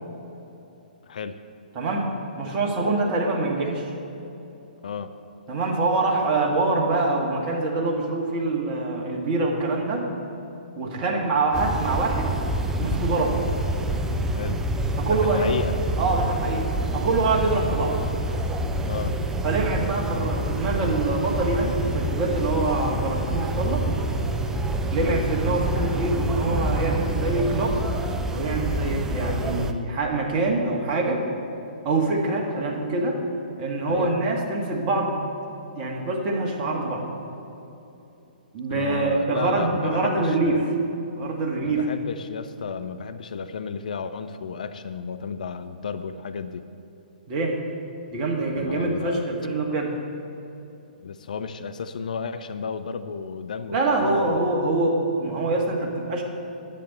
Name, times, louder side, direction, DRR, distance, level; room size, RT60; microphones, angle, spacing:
voice 1, 1.0-1.4 4.8-5.1 14.3-14.6 15.0-15.8 18.9-19.1 24.9-25.2 33.9-34.2 38.7-40.6 41.6-46.7 48.5-49.3 51.0-54.5, left 6 dB, 55° left, 10 dB, 0.5 m, -33 dB
voice 2, 1.8-3.9 5.5-10.1 10.8-12.3 12.8-13.4 15.0-15.5 16.0-18.0 19.4-23.8 24.9-27.8 28.3-31.2 31.8-33.2 33.6-35.2 35.7-37.1 38.5-40.6 41.2-41.9 47.3-47.6 48.1-49.9 53.7-56.2, right 2 dB, 30° right, -1 dB, 1.9 m, -25 dB
sound 1, 11.5-29.7, right 1 dB, 10° right, 0.5 m, -27 dB
10.5 x 8.3 x 8.0 m, 2.9 s
figure-of-eight pair, 125°, 5 cm